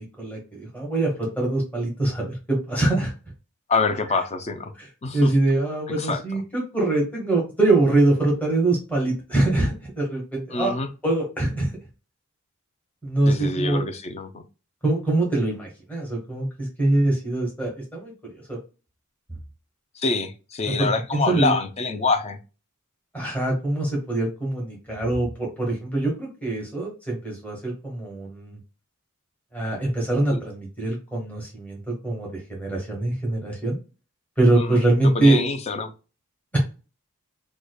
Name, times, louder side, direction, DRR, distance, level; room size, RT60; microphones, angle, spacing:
voice 1, 0.0-3.1 4.8-4.9 5.1-10.7 11.0-11.7 13.0-13.8 14.8-18.6 20.7-21.5 23.1-28.6 29.5-33.8 34.4-35.4, right 2 dB, 5° left, 1.1 m, -23 dB
voice 2, 3.7-4.7 5.0-5.3 6.0-6.2 10.5-10.9 13.3-14.4 20.0-22.4 30.3-30.4 34.5-35.9, left 3 dB, 30° left, 0.4 m, -26 dB
4.8 x 2.1 x 2.2 m
head